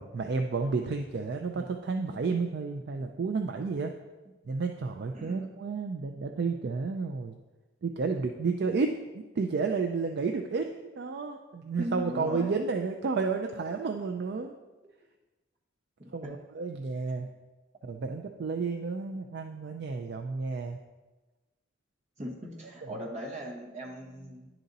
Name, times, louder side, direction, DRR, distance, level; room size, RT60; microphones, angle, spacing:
voice 1, 0.0-3.9 4.5-7.4 7.8-14.5 16.1-17.3 17.8-20.8, right 4 dB, 55° right, 4 dB, 0.3 m, -31 dB
voice 2, 5.1-5.5 11.8-12.5 16.0-16.4 22.2-24.5, equal, 35° right, -2 dB, 1.2 m, -38 dB
10.0 x 3.9 x 4.0 m, 1.2 s
head